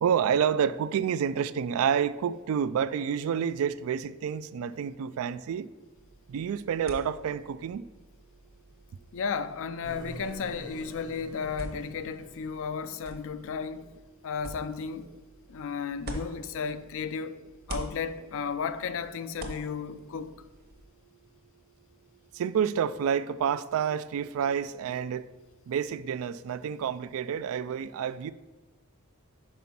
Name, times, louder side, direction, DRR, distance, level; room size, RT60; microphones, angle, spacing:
voice 1, 0.0-5.7 6.3-7.8 22.4-25.2 25.7-28.3, right 8 dB, 70° right, 0.3 m, -29 dB
sound 1, 6.0-17.1 17.4-20.9, right 1 dB, 45° right, 1.0 m, -46 dB
voice 2, 9.1-13.9 14.2-15.1 15.5-17.4 17.7-20.4, left 6 dB, 65° left, 0.4 m, -34 dB
sound 2, 9.8-13.8, right 1 dB, 20° right, 0.7 m, -47 dB
5.5 x 5.1 x 5.8 m
head